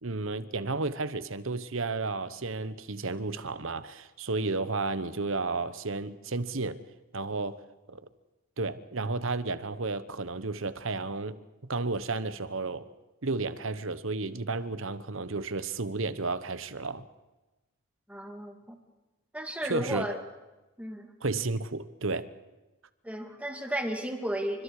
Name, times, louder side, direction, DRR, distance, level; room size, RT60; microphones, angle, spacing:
voice 1, 0.0-6.8 7.1-7.6 7.9-8.1 8.6-11.4 11.7-12.9 13.2-17.1 19.7-20.1 21.2-22.3, right 3 dB, 65° right, 1.1 m, -32 dB
voice 2, 18.1-18.8 19.3-20.2 20.8-21.1 23.0-24.6, right 1 dB, 5° right, 2.4 m, -34 dB
29.0 x 25.5 x 4.9 m
head